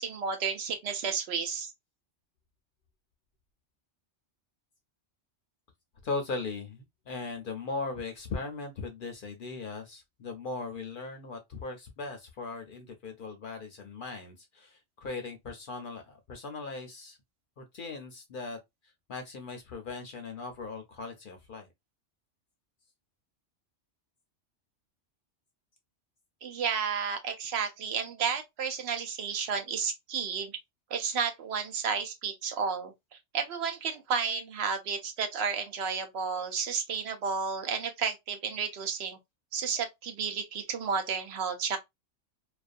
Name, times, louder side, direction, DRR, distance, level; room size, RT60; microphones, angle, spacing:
voice 1, 0.0-1.7 26.4-30.5 30.9-32.9 33.3-39.2 39.5-41.8, right 6 dB, 70° right, 0.8 m, -32 dB
voice 2, 6.0-17.2 17.6-18.6 19.1-21.7, left 3 dB, 60° left, 0.6 m, -38 dB
2.5 x 2.3 x 2.4 m
omnidirectional pair, 1.2 m